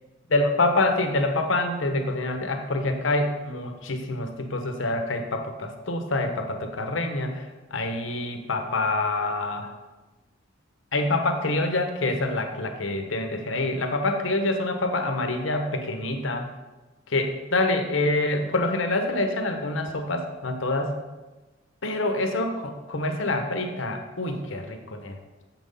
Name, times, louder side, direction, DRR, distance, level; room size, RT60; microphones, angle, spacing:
voice 1, 0.3-7.5 7.7-9.7 10.9-16.5 17.1-21.0 21.8-25.2, left 2 dB, 90° left, 5 dB, 1.0 m, -26 dB
7.4 x 6.1 x 5.4 m, 1.2 s
head